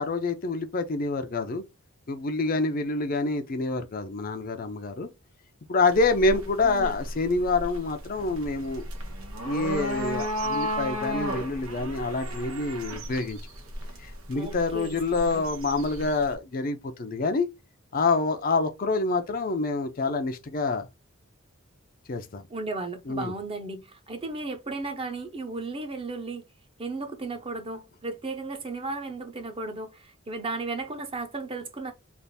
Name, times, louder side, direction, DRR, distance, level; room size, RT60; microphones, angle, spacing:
voice 1, 0.0-1.6 2.1-5.1 5.7-8.8 9.4-13.4 14.0-17.5 17.9-20.9 22.1-22.4 23.1-23.3, left 3 dB, 40° left, 0.5 m, -27 dB
sound 1, 5.9-16.3, equal, 90° right, 1.2 m, -34 dB
voice 2, 6.6-6.9 14.3-15.0 15.3-15.4 22.5-26.4 26.8-31.9, right 3 dB, 25° right, 0.6 m, -35 dB
3.4 x 2.5 x 4.0 m
head